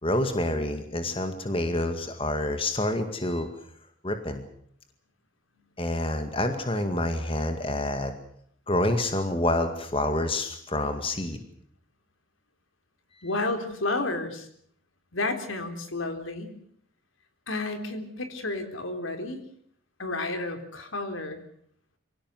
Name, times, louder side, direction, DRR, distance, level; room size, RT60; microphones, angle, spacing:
voice 1, 0.0-3.5 4.0-4.4 5.8-8.1 8.7-11.4, left 1 dB, 25° left, 7 dB, 2.1 m, -27 dB
voice 2, 13.2-14.5 15.1-16.5 17.5-19.4 20.0-21.4, left 2 dB, 80° left, 7 dB, 4.0 m, -31 dB
25.5 x 17.0 x 7.8 m, 0.66 s
head